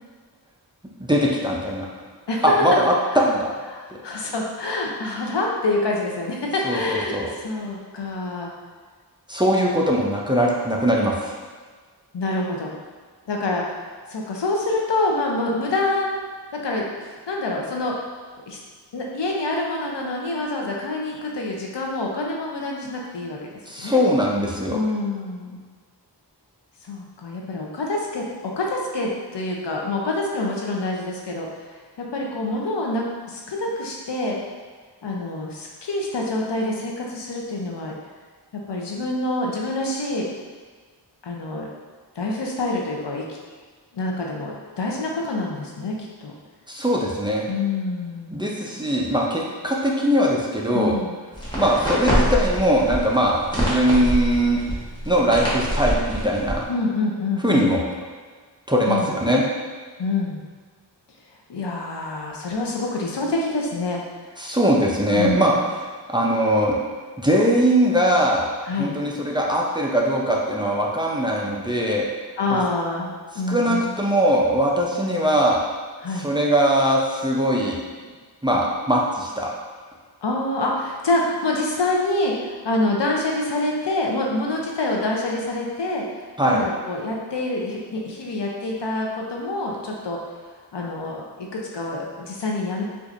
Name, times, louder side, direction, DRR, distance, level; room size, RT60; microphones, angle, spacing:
voice 1, 1.0-1.9 2.4-3.5 6.6-7.3 9.3-11.4 23.7-24.8 46.7-47.5 48.3-51.0 51.5-54.6 55.1-56.6 57.4-57.9 58.7-59.4 64.4-65.5 66.1-66.8 67.2-68.5 68.8-72.1 72.5-72.6 73.5-75.6 76.2-77.8 78.4-79.5 86.4-86.6, equal, 10° right, -3 dB, 0.5 m, -21 dB
voice 2, 3.7-8.5 9.6-9.7 12.1-12.8 13.3-13.6 14.1-16.1 16.5-16.8 17.3-17.9 18.5-18.6 18.9-23.4 23.8-24.0 24.7-25.6 26.8-31.5 32.0-34.4 35.0-37.9 38.7-40.3 41.2-41.7 42.2-43.5 43.9-45.9 46.2-46.3 47.5-48.4 50.7-51.1 56.7-57.8 58.9-59.1 60.0-60.4 61.5-64.0 65.1-65.5 68.7-69.0 72.4-73.9 76.0-76.3 80.2-90.2 90.7-92.8, left 2 dB, 80° left, -1 dB, 0.6 m, -26 dB
sound 1, 51.3-56.6, equal, 10° left, 1.1 m, -25 dB
4.4 x 2.5 x 2.5 m, 1.5 s
wide cardioid pair, 45°, 42 cm